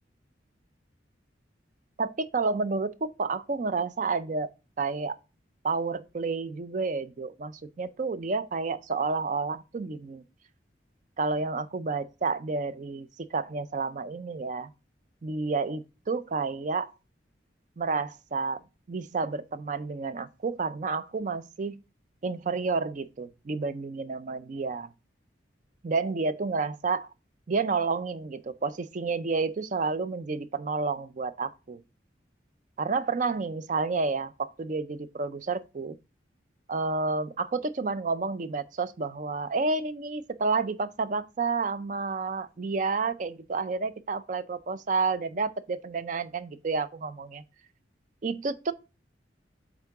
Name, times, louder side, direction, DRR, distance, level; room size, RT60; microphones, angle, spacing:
voice 1, 2.0-4.5 4.8-5.2 5.6-10.2 11.2-14.7 15.2-16.9 17.8-18.6 18.9-21.8 22.2-24.9 25.8-27.1 27.5-31.8 32.8-36.0 36.7-47.4 48.2-48.7, right 4 dB, 45° right, 0.4 m, -30 dB
8.3 x 3.7 x 3.4 m
head